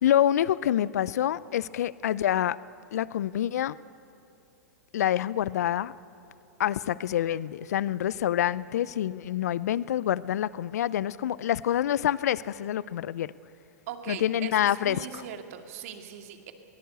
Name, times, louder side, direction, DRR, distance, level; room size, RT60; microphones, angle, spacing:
voice 1, 0.0-2.6 2.9-3.8 4.9-5.9 6.6-13.3 14.1-15.2, left 11 dB, 70° left, 20 dB, 0.5 m, -27 dB
voice 2, 13.9-16.5, right 9 dB, 60° right, 6 dB, 2.3 m, -40 dB
22.5 x 17.5 x 8.1 m, 2.9 s
hypercardioid pair, 110°, 9 cm